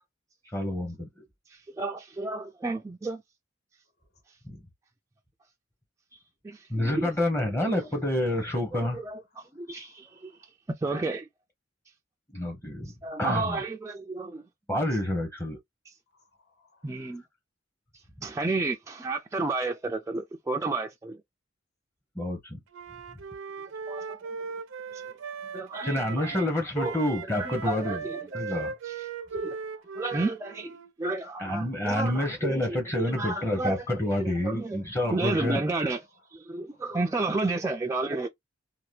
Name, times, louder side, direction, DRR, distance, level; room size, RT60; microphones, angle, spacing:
voice 1, 0.5-1.1 4.4-4.6 6.7-9.0 12.3-12.9 13.2-13.6 14.7-15.6 22.2-22.6 25.8-28.1 28.3-28.7 31.4-35.6, left 1 dB, 15° left, 0.8 m, -28 dB
voice 2, 1.5-3.2 6.4-7.1 8.7-9.2 9.5-10.3 10.8-11.3 13.0-14.4 16.8-17.2 18.2-21.2 23.9-24.2 24.9-25.0 25.5-26.3 26.8-27.0 27.3-28.2 28.8-28.9 29.3-29.6 30.0-33.8 34.2-34.8 35.1-36.0 36.3-38.3, right 3 dB, 15° right, 0.3 m, -31 dB
voice 3, 9.4-10.5 16.1-17.2 29.2-30.0, left 3 dB, 55° left, 1.0 m, -66 dB
Wind instrument woodwind instrument, 22.7-26.5 26.8-30.9, right 5 dB, 80° right, 0.5 m, -38 dB
2.8 x 2.2 x 3.1 m
head